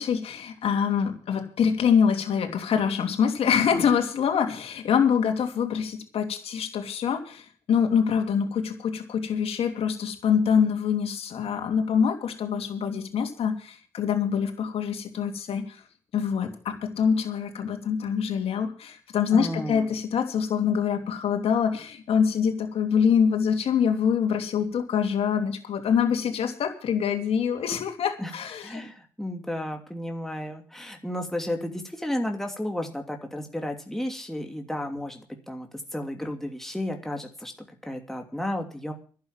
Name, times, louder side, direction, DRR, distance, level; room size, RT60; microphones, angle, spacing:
voice 1, 0.0-15.8 16.1-28.8, left 7 dB, 70° left, 5 dB, 2.9 m, -25 dB
voice 2, 19.3-19.9 28.2-28.3 28.6-37.5 37.8-38.9, left 1 dB, 5° left, 3 dB, 2.8 m, -33 dB
11.5 x 8.7 x 9.0 m, 0.42 s
supercardioid pair, 50°, 11 cm